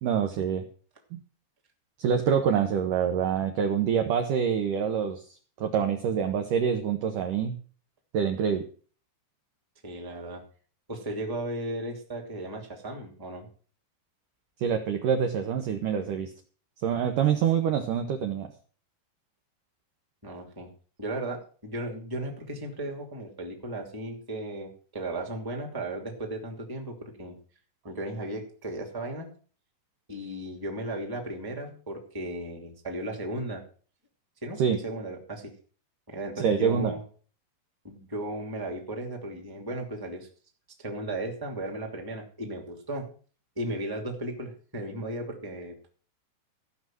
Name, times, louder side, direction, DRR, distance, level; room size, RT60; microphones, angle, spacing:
voice 1, 0.0-0.7 1.1-1.2 2.0-7.6 8.1-8.7 14.6-16.3 16.8-18.5 34.6-34.8 36.4-36.9, right 7 dB, 75° right, 5 dB, 2.0 m, -26 dB
voice 2, 9.8-10.4 10.9-13.5 20.2-20.7 21.0-27.4 27.8-29.3 30.1-33.6 34.4-35.5 36.1-37.0 37.8-40.3 40.8-43.1 43.5-45.7, right 1 dB, 10° right, 3 dB, 1.6 m, -35 dB
15.0 x 6.0 x 7.6 m, 0.43 s
omnidirectional pair, 5.0 m